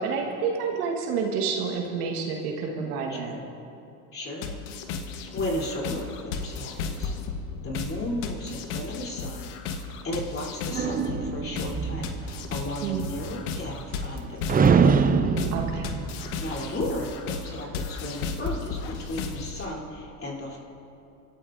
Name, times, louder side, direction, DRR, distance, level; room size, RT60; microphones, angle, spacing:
voice 1, 0.0-3.3 12.8-13.0 15.5-15.9, right 5 dB, 85° right, 1 dB, 1.6 m, -29 dB
voice 2, 4.1-4.5 5.3-7.1 7.6-9.5 10.0-14.7 16.4-20.6, left 1 dB, 30° left, -3 dB, 3.4 m, -34 dB
sound 1, 4.4-19.7, left 5 dB, 75° left, 1.3 m, -35 dB
sound 2, 10.7-14.2 14.5-17.2, right 6 dB, 20° right, 0.5 m, -25 dB
25.0 x 13.0 x 2.6 m, 2.8 s
supercardioid pair, 95°, 44 cm